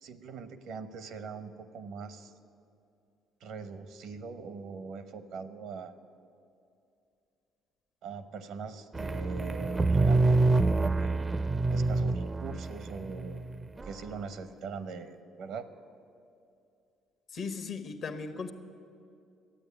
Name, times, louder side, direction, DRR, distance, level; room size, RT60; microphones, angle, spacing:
voice 1, 0.0-2.3 3.4-5.9 8.0-11.1 11.7-13.4 13.8-15.7, right 5 dB, 65° right, 12 dB, 0.9 m, -42 dB
sound 1, 8.9-13.9, right 2 dB, 25° right, 0.6 m, -26 dB
voice 2, 17.3-18.5, left 5 dB, 55° left, 9 dB, 1.2 m, -37 dB
12.5 x 9.2 x 10.0 m, 2.5 s
hypercardioid pair, 50°, 0 cm